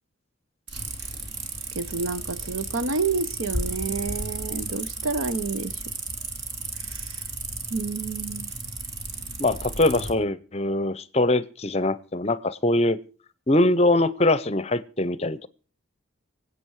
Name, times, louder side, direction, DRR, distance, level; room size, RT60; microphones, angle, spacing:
sound 1, 0.7-10.1, right 3 dB, 50° right, 2.7 m, -34 dB
voice 1, 1.7-5.8 6.8-7.2 7.7-8.5, right 4 dB, 75° right, 0.9 m, -29 dB
voice 2, 9.4-13.0 13.5-15.5, left 2 dB, 30° left, 0.6 m, -22 dB
25.0 x 8.4 x 4.7 m
head